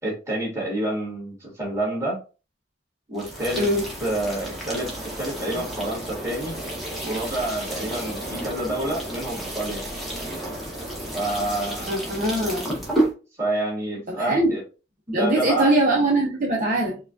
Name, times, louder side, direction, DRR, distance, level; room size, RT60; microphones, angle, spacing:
voice 1, 0.0-2.2 3.1-3.6 4.0-6.5 7.0-9.9 11.1-12.0 13.4-14.6 15.1-15.7, right 1 dB, 15° right, 1.9 m, -28 dB
sound 1, 3.2-13.1, right 1 dB, ahead, 1.0 m, -31 dB
voice 2, 11.9-12.6 14.1-14.6 15.1-17.0, right 1 dB, 45° right, 0.7 m, -22 dB
4.7 x 2.4 x 2.5 m
head